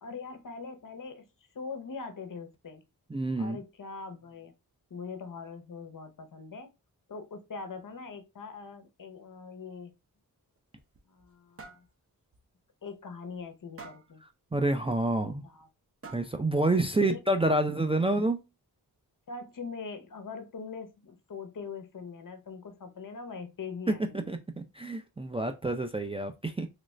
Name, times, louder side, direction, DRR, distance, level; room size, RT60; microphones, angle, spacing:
voice 1, 0.0-1.3 1.5-2.8 3.4-4.5 4.9-6.7 7.1-9.9 11.1-11.9 12.8-14.2 15.2-15.7 16.7-17.2 19.3-24.4, left 5 dB, 55° left, 0.8 m, -42 dB
voice 2, 3.1-3.6 14.5-15.4 16.1-18.4 23.9-24.0 24.3-26.7, right 2 dB, 15° right, 0.3 m, -28 dB
sound 1, 10.6-11.3 11.6-11.9 12.3-12.5 12.9-13.0 13.8-14.1 15.3-15.4 16.0-16.5, right 4 dB, 35° right, 0.8 m, -48 dB
3.1 x 2.4 x 3.1 m
cardioid pair, 65°, 38 cm